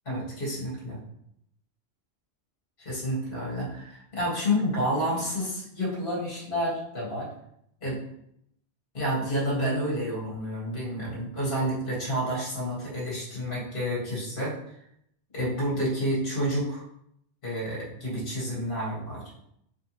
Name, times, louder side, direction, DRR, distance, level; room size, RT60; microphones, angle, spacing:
voice 1, 0.1-1.0 2.8-7.3 7.8-8.0 8.9-14.6 15.3-16.8 17.4-19.2, equal, 50° left, -5 dB, 2.0 m, -29 dB
5.0 x 3.3 x 3.0 m, 0.75 s
omnidirectional pair, 1.2 m